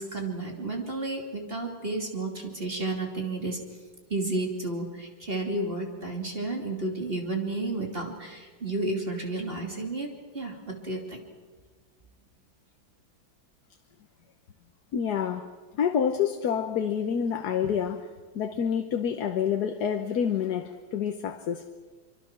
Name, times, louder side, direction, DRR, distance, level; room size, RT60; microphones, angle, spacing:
voice 1, 0.0-3.6 4.1-10.1 10.3-11.2, right 2 dB, 30° right, 2.9 m, -32 dB
voice 2, 14.9-18.1 18.3-21.7, left 8 dB, 60° left, 1.4 m, -28 dB
25.0 x 25.0 x 6.0 m
omnidirectional pair, 2.1 m